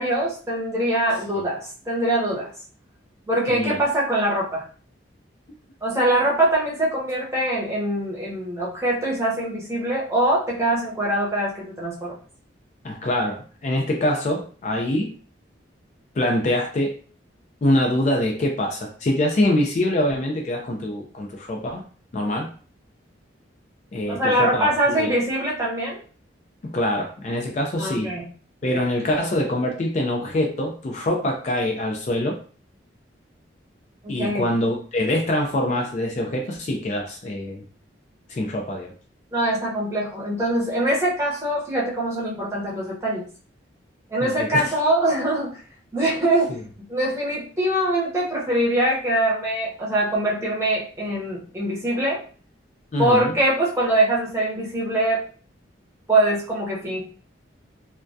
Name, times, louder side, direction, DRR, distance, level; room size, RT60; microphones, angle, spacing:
voice 1, 0.0-2.5 3.3-4.6 5.8-12.2 24.1-26.0 27.8-28.3 28.7-28.8 34.0-34.5 39.3-43.3 44.1-45.6 45.9-46.5 46.9-52.2 53.0-55.2 56.1-57.0, right 1 dB, 15° right, -5 dB, 0.7 m, -23 dB
voice 2, 3.5-3.8 12.8-15.1 16.2-17.0 17.6-21.8 22.1-22.5 23.9-24.7 25.0-25.1 26.6-28.1 28.6-32.4 34.1-37.6 38.3-38.9 44.2-44.7 46.5-46.6 52.9-53.3, left 1 dB, 40° left, 1 dB, 0.3 m, -24 dB
2.2 x 2.2 x 2.5 m, 0.41 s
head